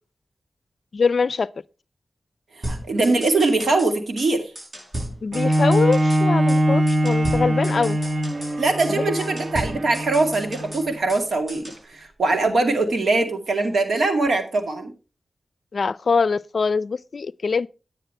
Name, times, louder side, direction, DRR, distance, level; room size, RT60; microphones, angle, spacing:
voice 1, 0.9-1.5 5.2-8.0 8.9-9.0 15.7-17.7, left 5 dB, 65° left, 0.4 m, -23 dB
sound 1, 2.6-3.9 4.2-4.3 4.6-6.2 6.5-6.6 6.9-8.5 8.8-8.9 9.2-11.2 11.5-11.8, right 1 dB, 35° right, 7.6 m, -35 dB
voice 2, 2.6-4.5 8.6-14.9, right 3 dB, 80° right, 2.3 m, -22 dB
Bowed string instrument, 5.3-11.0 11.6-11.7, equal, 55° right, 1.1 m, -22 dB
10.0 x 9.6 x 4.4 m
wide cardioid pair, 75°, 0 cm